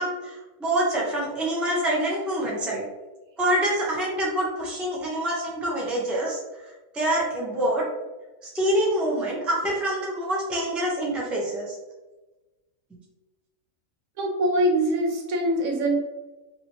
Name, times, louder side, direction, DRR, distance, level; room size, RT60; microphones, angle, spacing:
voice 1, 0.0-2.8 3.4-6.4 6.9-7.8 8.5-11.7, right 1 dB, ahead, -4 dB, 0.3 m, -26 dB
voice 2, 14.2-16.0, right 1 dB, 65° right, 1 dB, 1.0 m, -23 dB
3.0 x 2.8 x 2.8 m, 1.1 s
omnidirectional pair, 1.5 m